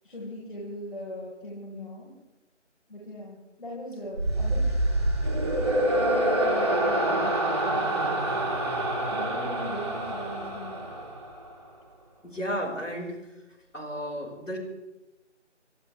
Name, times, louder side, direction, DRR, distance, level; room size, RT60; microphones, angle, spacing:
voice 1, 0.0-2.1 2.9-4.7 6.0-8.6 9.1-10.9, left 1 dB, 45° left, -5 dB, 4.6 m, -40 dB
sound 1, 4.1-11.5, right 1 dB, 25° right, 1.8 m, -26 dB
voice 2, 12.2-13.2 13.7-14.6, equal, 90° left, 1 dB, 5.0 m, -33 dB
29.0 x 13.0 x 3.4 m, 1.0 s
figure-of-eight pair, 165°, 37 cm